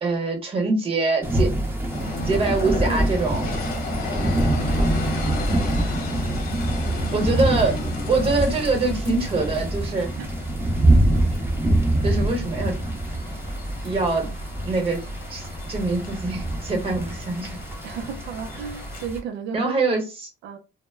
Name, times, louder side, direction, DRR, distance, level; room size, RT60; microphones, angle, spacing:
voice 1, 0.0-1.5 2.2-3.5 7.1-7.8 8.1-10.1 11.3-11.4 12.0-12.8 13.8-14.3 14.6-15.0 15.3-17.6 19.5-20.3, right 3 dB, 35° right, 1.1 m, -24 dB
sound 1, 1.2-19.2, right 1 dB, 15° right, 0.7 m, -25 dB
sound 2, 1.9-19.1, left 3 dB, 60° left, 0.9 m, -35 dB
voice 2, 17.8-19.7 20.4-20.6, right 7 dB, 85° right, 0.5 m, -34 dB
2.1 x 2.0 x 3.4 m
cardioid pair, 110°, 17 cm